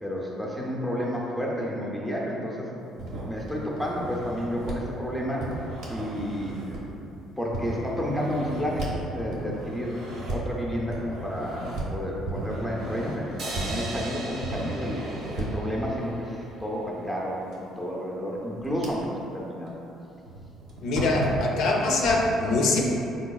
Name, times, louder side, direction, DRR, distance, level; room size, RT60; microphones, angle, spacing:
voice 1, 0.0-5.5 5.9-6.8 7.4-10.0 10.3-15.0 15.4-19.8, equal, ahead, -4 dB, 0.4 m, -31 dB
sound 1, 3.0-4.8 5.4-7.0 7.5-8.9 9.3-10.4 10.9-11.8 12.3-14.1 14.4-15.6 17.5-17.6 18.2-19.3 19.7-19.8 20.2-22.3, right 2 dB, 85° right, 0.9 m, -35 dB
sound 2, 13.4-16.7, right 2 dB, 55° right, 0.6 m, -38 dB
voice 2, 20.8-22.8, left 2 dB, 65° left, -1 dB, 0.4 m, -23 dB
3.8 x 2.7 x 2.3 m, 2.8 s
cardioid pair, 135°, 0 cm